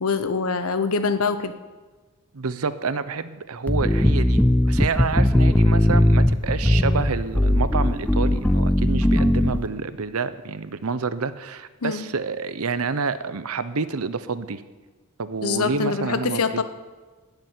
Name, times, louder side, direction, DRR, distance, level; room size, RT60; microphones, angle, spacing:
voice 1, 0.0-1.5 11.8-12.0 15.4-16.6, left 4 dB, 80° left, 11 dB, 0.9 m, -24 dB
voice 2, 2.3-14.6 15.2-16.6, right 4 dB, 80° right, 13 dB, 0.8 m, -28 dB
sound 1, 3.7-9.7, left 1 dB, 5° left, 0.4 m, -19 dB
13.5 x 6.8 x 9.3 m, 1.3 s
head